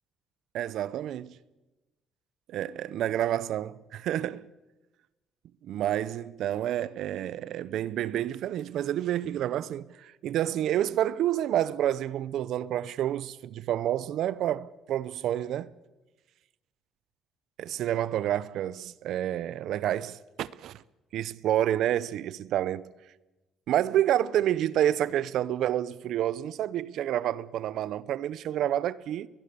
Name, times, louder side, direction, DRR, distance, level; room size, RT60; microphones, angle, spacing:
voice 1, 0.5-1.4 2.5-4.5 5.6-15.7 17.6-20.8 21.1-22.9 23.7-29.3, right 11 dB, 70° right, 0.6 m, -29 dB
21.0 x 20.5 x 6.9 m
cardioid pair, 100°, 0 cm